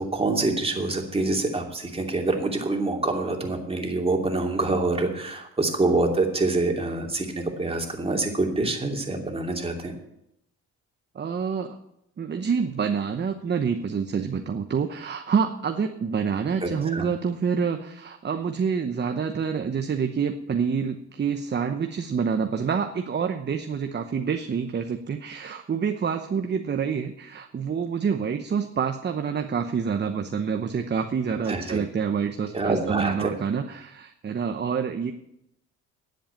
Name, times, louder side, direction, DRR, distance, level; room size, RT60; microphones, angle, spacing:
voice 1, 0.0-9.9 16.6-17.1 31.5-31.8 32.5-33.3, right 2 dB, 20° right, 1 dB, 2.7 m, -26 dB
voice 2, 11.1-11.8 12.2-35.1, right 6 dB, 35° right, 6 dB, 0.9 m, -27 dB
10.5 x 7.9 x 8.6 m, 0.80 s
cardioid pair, 90°, 30 cm